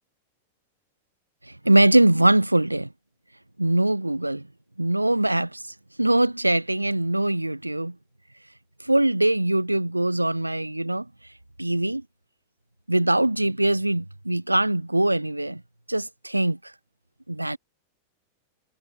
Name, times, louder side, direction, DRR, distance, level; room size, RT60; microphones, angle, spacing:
voice 1, 1.4-2.9 3.6-4.4 4.8-7.9 8.8-11.1 11.6-12.0 12.9-15.6 15.9-16.7 17.3-17.6, right 1 dB, 85° right, 0.6 m, -22 dB
figure-of-eight pair, 90°, 0 cm